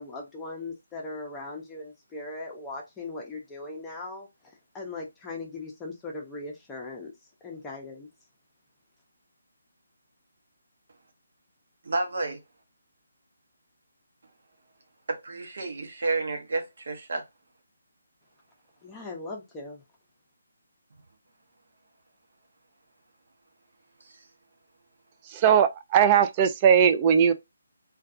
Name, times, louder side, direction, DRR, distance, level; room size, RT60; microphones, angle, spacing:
voice 1, 0.0-4.3 4.7-7.1 7.4-8.1 18.8-19.8, left 3 dB, 10° left, 0.6 m, -39 dB
voice 2, 11.8-12.4 15.1-17.2 24.0-24.1, right 3 dB, 60° right, 0.8 m, -30 dB
voice 3, 25.3-27.3, right 8 dB, 25° right, 0.3 m, -19 dB
2.3 x 2.2 x 2.6 m
figure-of-eight pair, 150°, 0 cm